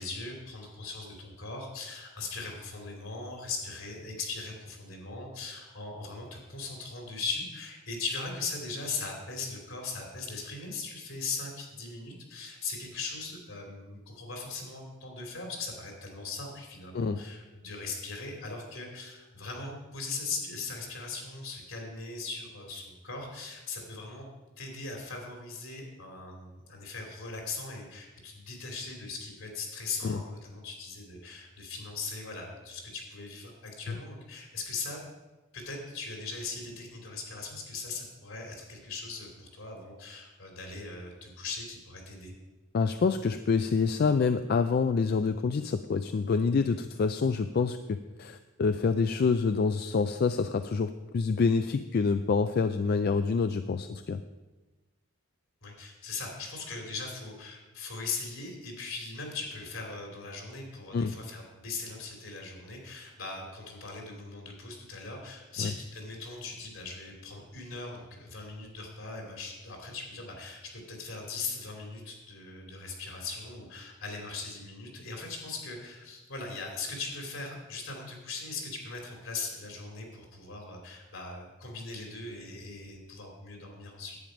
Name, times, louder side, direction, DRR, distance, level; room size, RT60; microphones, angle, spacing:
voice 1, 0.0-24.2 24.6-35.0 35.5-42.3 55.6-84.2, left 4 dB, 70° left, 1 dB, 2.8 m, -39 dB
voice 2, 42.7-54.2 60.9-61.1 65.6-65.7, left 5 dB, 50° left, 10 dB, 0.3 m, -27 dB
10.5 x 8.6 x 5.1 m, 1.2 s
head